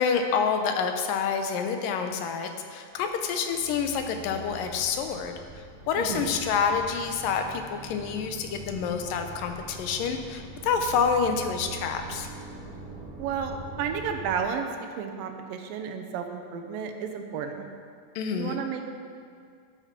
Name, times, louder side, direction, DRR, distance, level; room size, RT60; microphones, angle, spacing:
voice 1, 0.0-12.3 18.2-18.6, left 6 dB, 85° left, 5 dB, 2.5 m, -28 dB
sound 1, 3.0-14.4, right 3 dB, 30° right, 2.4 m, -43 dB
voice 2, 6.0-6.4 13.2-17.7 18.3-18.8, right 6 dB, 85° right, 5 dB, 2.7 m, -32 dB
12.0 x 9.1 x 5.9 m, 2.2 s
omnidirectional pair, 3.9 m